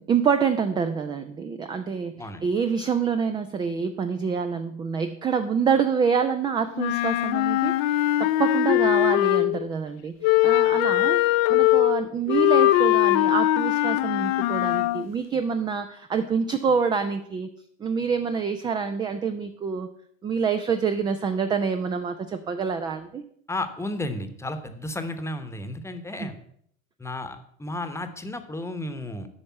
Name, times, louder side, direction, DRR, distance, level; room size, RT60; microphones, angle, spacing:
voice 1, 0.0-17.5 17.8-19.9 20.2-23.2 26.2-26.3, right 6 dB, 15° right, 8 dB, 0.3 m, -26 dB
Wind instrument woodwind instrument, 6.8-9.7 10.2-15.1, left 16 dB, 50° left, 0.5 m, -21 dB
voice 2, 23.5-26.4 27.0-29.3, left 1 dB, 5° left, 9 dB, 1.0 m, -33 dB
8.6 x 5.2 x 7.1 m, 0.67 s
hypercardioid pair, 95°, 39 cm